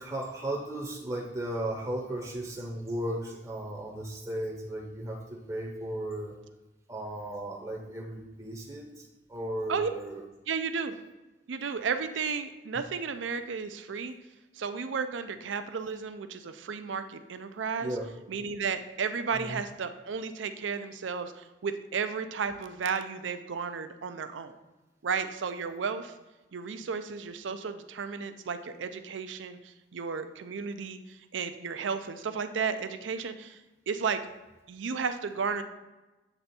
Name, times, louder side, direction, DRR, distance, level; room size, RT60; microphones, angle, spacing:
voice 1, 0.0-6.4 6.9-10.2 17.8-18.1 19.3-19.6, right 1 dB, 20° right, -1 dB, 0.7 m, -35 dB
voice 2, 10.5-10.9 11.5-14.1 14.5-18.0 18.3-24.6 25.0-26.1 26.5-33.6 33.9-34.2 34.7-35.6, right 5 dB, 85° right, 9 dB, 0.5 m, -33 dB
8.1 x 3.4 x 4.1 m, 1.1 s
head